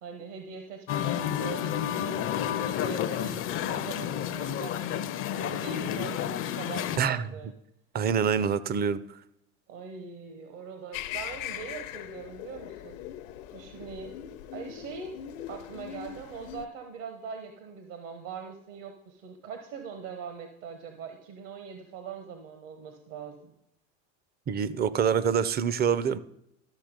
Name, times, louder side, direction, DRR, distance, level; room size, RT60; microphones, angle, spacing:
voice 1, 0.0-7.5 9.7-13.0 13.5-14.2 14.5-15.1 15.5-23.5, right 6 dB, 65° right, 1.2 m, -42 dB
Musical instrument, 0.9-7.0, left 10 dB, 35° left, 0.4 m, -30 dB
voice 2, 7.0-7.3 7.9-9.0 24.5-26.2, right 7 dB, 25° right, 0.4 m, -26 dB
sound 1, 10.9-16.7, left 11 dB, 75° left, 0.7 m, -40 dB
12.5 x 5.7 x 5.2 m
hypercardioid pair, 90°, 40 cm